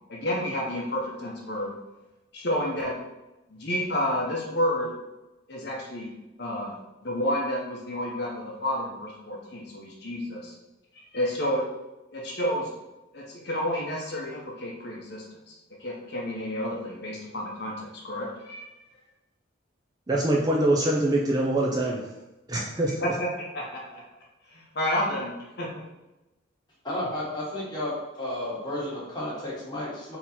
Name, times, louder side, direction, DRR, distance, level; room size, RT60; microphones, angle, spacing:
voice 1, 0.1-1.7 2.3-3.0 3.5-4.9 5.5-6.1 6.4-6.8 7.0-10.5 11.1-11.6 12.1-12.7 13.1-15.5 15.8-18.7 23.0-23.3 23.5-24.0 24.5-25.7, left 1 dB, 55° left, -2 dB, 0.8 m, -30 dB
voice 2, 20.1-22.0 22.5-23.1, right 1 dB, 20° right, -2 dB, 0.4 m, -24 dB
voice 3, 26.8-27.9 28.2-30.2, left 1 dB, 20° left, -7 dB, 1.4 m, -32 dB
3.8 x 2.9 x 4.1 m, 1.0 s
head